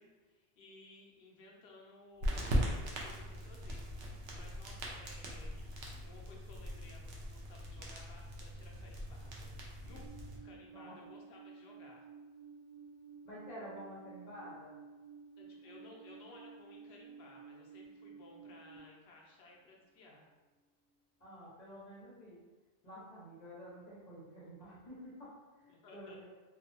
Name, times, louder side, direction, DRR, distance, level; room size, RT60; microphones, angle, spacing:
voice 1, 0.0-5.6 6.0-9.5 9.8-12.1 15.4-20.3 25.7-26.2, left 2 dB, 85° left, -2 dB, 0.9 m, -58 dB
sound 1, 2.2-10.4, equal, 85° right, 0.8 m, -40 dB
Alarm, 9.8-18.8, right 6 dB, 15° left, 0.5 m, -54 dB
voice 2, 13.2-14.7 21.2-22.4 22.8-26.2, equal, 45° left, -8 dB, 1.0 m, -50 dB
2.7 x 2.1 x 2.6 m, 1.3 s
omnidirectional pair, 1.0 m